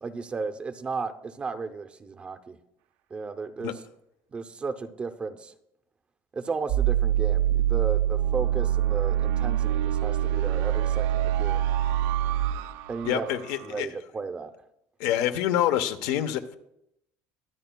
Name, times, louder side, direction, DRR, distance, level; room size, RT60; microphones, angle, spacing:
voice 1, 0.0-2.6 3.1-3.7 4.3-5.5 6.3-11.7 12.9-13.2 13.6-14.5, right 4 dB, 20° right, 9 dB, 0.5 m, -34 dB
sound 1, 6.7-13.7, right 12 dB, 80° right, 0.6 m, -25 dB
voice 2, 13.0-13.9 15.0-16.6, left 11 dB, 80° left, 9 dB, 0.9 m, -26 dB
23.0 x 9.0 x 2.2 m, 0.79 s
cardioid pair, 165°, 6 cm